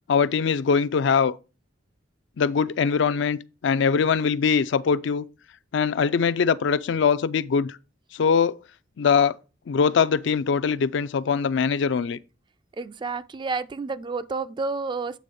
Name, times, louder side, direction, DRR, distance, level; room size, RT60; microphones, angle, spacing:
voice 1, 0.1-1.4 2.4-5.3 5.7-7.8 8.1-8.6 9.0-9.4 9.7-12.2, left 6 dB, 70° left, 0.4 m, -22 dB
voice 2, 12.7-15.2, right 4 dB, 25° right, 0.3 m, -30 dB
8.4 x 3.4 x 5.2 m
head